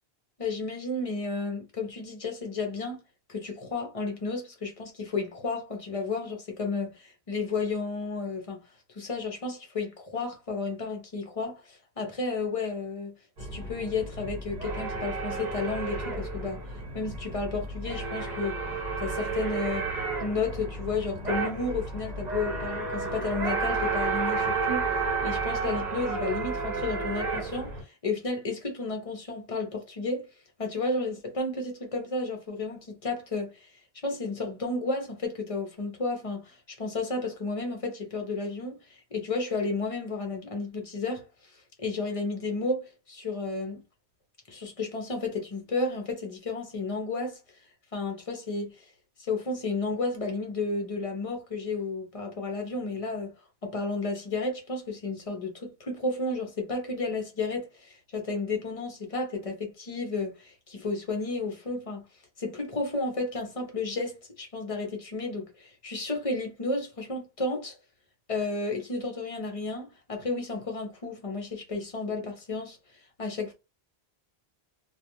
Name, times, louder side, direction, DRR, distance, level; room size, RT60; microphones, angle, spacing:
voice 1, 0.4-3.0 3.3-8.6 8.9-13.1 13.4-16.7 16.9-18.6 19.0-19.9 20.2-30.3 30.6-33.7 34.0-43.8 44.5-47.4 47.9-48.9 49.2-53.3 53.6-62.0 62.4-67.7 68.3-72.8 73.2-73.5, left 3 dB, 35° left, 0.8 m, -32 dB
sound 1, 13.4-27.8, right 4 dB, 45° right, 0.9 m, -31 dB
2.4 x 2.3 x 2.9 m
omnidirectional pair, 1.1 m